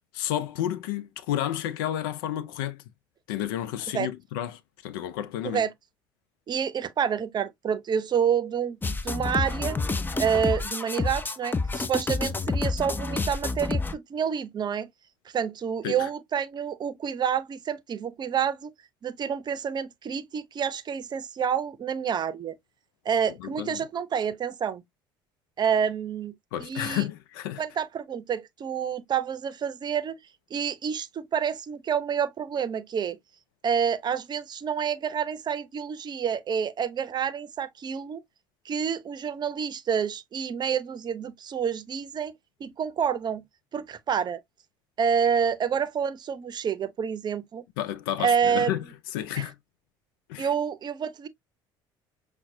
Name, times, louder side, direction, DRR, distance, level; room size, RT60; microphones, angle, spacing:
voice 1, 0.1-2.8 3.3-5.6 15.8-16.1 23.4-23.9 26.5-27.6 47.8-48.8 49.1-49.5 50.3-50.5, left 12 dB, 80° left, 0.5 m, -31 dB
voice 2, 6.5-9.8 10.2-14.9 15.3-18.7 19.0-22.5 23.0-24.8 25.6-26.3 26.6-27.0 27.6-30.2 30.5-33.2 33.6-38.2 38.7-42.3 42.6-43.4 43.7-44.4 45.0-47.6 48.2-48.7 49.4-49.5 50.4-51.3, right 7 dB, 40° right, 0.6 m, -28 dB
sound 1, 8.8-13.9, left 3 dB, 20° left, 0.6 m, -28 dB
5.8 x 2.2 x 2.6 m
hypercardioid pair, 70°, 11 cm